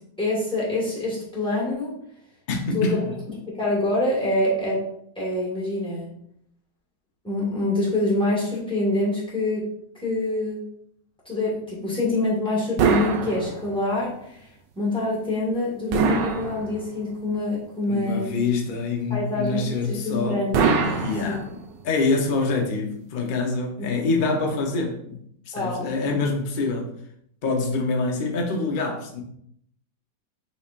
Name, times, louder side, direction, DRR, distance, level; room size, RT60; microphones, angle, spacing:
voice 1, 0.2-1.9 2.7-2.8 3.6-4.8 5.1-6.1 7.2-9.7 9.9-10.6 11.2-14.4 14.7-18.3 19.1-21.4 23.8-23.9 25.5-25.9, left 2 dB, 5° left, 1.5 m, -26 dB
voice 2, 2.5-3.1 17.9-20.5 20.8-21.5 21.8-25.2 25.5-26.9 27.4-29.2, left 3 dB, 45° left, 0.6 m, -25 dB
sound 1, 12.8-14.0 15.9-17.1 20.5-21.8, right 5 dB, 80° right, 1.3 m, -24 dB
6.2 x 3.2 x 2.5 m
omnidirectional pair, 1.9 m